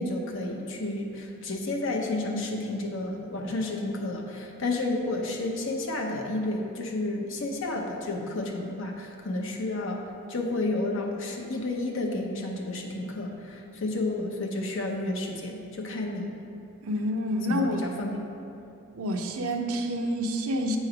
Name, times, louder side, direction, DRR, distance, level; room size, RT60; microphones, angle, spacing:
voice 1, 0.0-16.3 17.5-18.3, left 2 dB, 55° left, 0 dB, 0.7 m, -31 dB
voice 2, 16.8-17.9 19.0-20.8, equal, 75° right, 4 dB, 0.6 m, -28 dB
7.6 x 3.1 x 4.9 m, 2.7 s
head